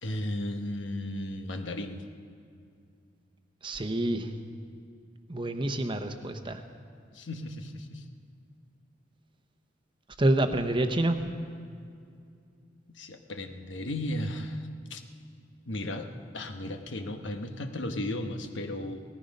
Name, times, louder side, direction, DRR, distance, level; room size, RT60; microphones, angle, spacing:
voice 1, 0.0-2.0 7.1-8.0 12.9-15.0 15.7-16.1 16.3-19.0, left 1 dB, 90° left, 6 dB, 1.1 m, -35 dB
voice 2, 3.6-4.3 5.3-6.6 10.2-11.2, right 1 dB, 25° right, 7 dB, 0.8 m, -27 dB
17.5 x 14.0 x 5.3 m, 2.3 s
head